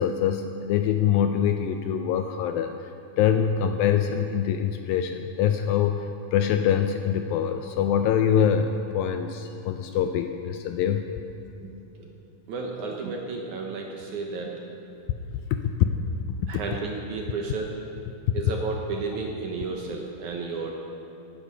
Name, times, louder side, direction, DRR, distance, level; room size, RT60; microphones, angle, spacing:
voice 1, 0.0-2.7 3.2-11.1 15.5-15.9 18.3-18.4, left 8 dB, 80° left, 7 dB, 2.2 m, -24 dB
voice 2, 11.6-12.1 12.5-14.6 16.5-17.7 18.3-20.7, right 4 dB, 65° right, 0 dB, 2.1 m, -32 dB
16.5 x 11.5 x 5.6 m, 2.8 s
omnidirectional pair, 4.5 m